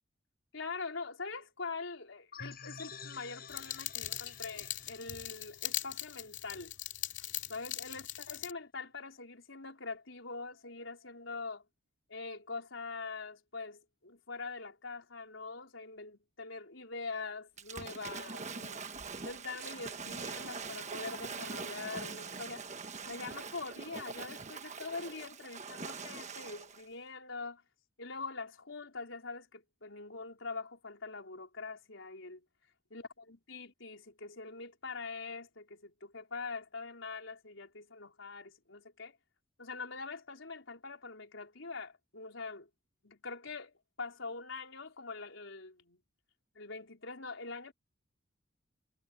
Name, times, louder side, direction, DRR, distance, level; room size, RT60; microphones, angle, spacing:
voice 1, 0.5-6.7 7.5-11.6 12.1-18.8 19.2-22.7 23.0-27.6 28.0-32.4 32.9-33.0 33.3-39.2 39.6-42.7 43.0-46.0 46.5-47.7, left 4 dB, 90° left, 4.5 m, -44 dB
sound 1, 2.3-6.8, left 5 dB, 50° left, 5.8 m, -50 dB
sound 2, 3.5-8.5, left 13 dB, 65° left, 2.7 m, -40 dB
Waves surf / Splash splatter, 17.6-26.8, right 5 dB, 35° right, 1.3 m, -43 dB
head